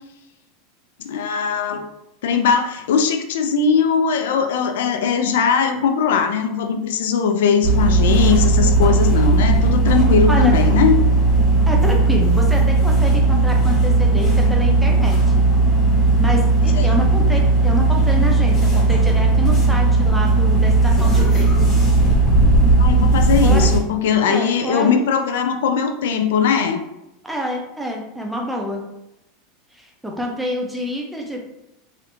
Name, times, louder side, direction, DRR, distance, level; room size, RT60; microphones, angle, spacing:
voice 1, 1.0-1.8 2.2-11.0 16.8-16.9 22.8-26.8, left 6 dB, 80° left, 6 dB, 0.4 m, -19 dB
sound 1, 7.6-23.8, right 2 dB, 20° left, 1.1 m, -16 dB
voice 2, 11.7-15.5 16.2-21.5 23.4-23.7 24.3-24.9 27.2-28.8 29.7-31.4, equal, ahead, -1 dB, 0.4 m, -27 dB
3.2 x 2.4 x 3.0 m, 0.89 s
supercardioid pair, 175°, 0 cm